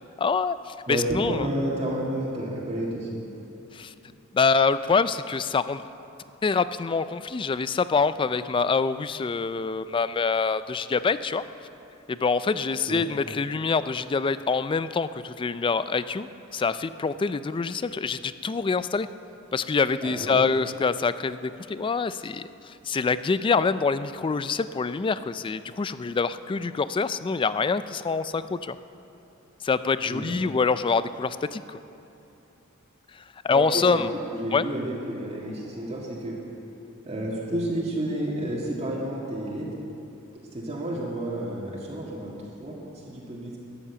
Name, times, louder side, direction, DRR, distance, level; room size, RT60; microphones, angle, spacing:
voice 1, 0.2-1.5 3.7-3.9 4.3-5.9 6.4-11.4 12.1-19.1 19.5-28.8 29.6-31.8 33.4-34.1 34.5-34.7, left 4 dB, 25° left, 14 dB, 0.3 m, -25 dB
voice 2, 0.9-3.2 12.9-13.1 20.0-20.4 30.1-30.4 33.5-34.0 34.3-36.4 37.0-39.7 40.5-43.6, right 1 dB, 30° right, -5 dB, 1.8 m, -30 dB
13.0 x 10.0 x 6.9 m, 2.8 s
head